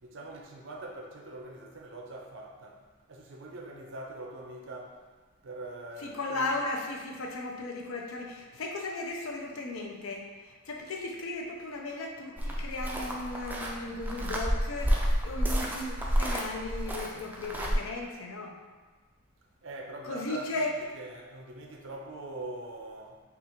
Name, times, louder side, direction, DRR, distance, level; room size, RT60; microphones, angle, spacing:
voice 1, 0.0-2.8 3.1-5.0 5.4-6.5 19.6-23.2, right 2 dB, 60° right, 1 dB, 0.6 m, -43 dB
voice 2, 6.0-18.6 20.0-20.7, left 2 dB, 80° left, 1 dB, 0.6 m, -36 dB
sound 1, 12.4-17.7, equal, 10° right, 0.4 m, -30 dB
5.2 x 2.4 x 2.9 m, 1.3 s
head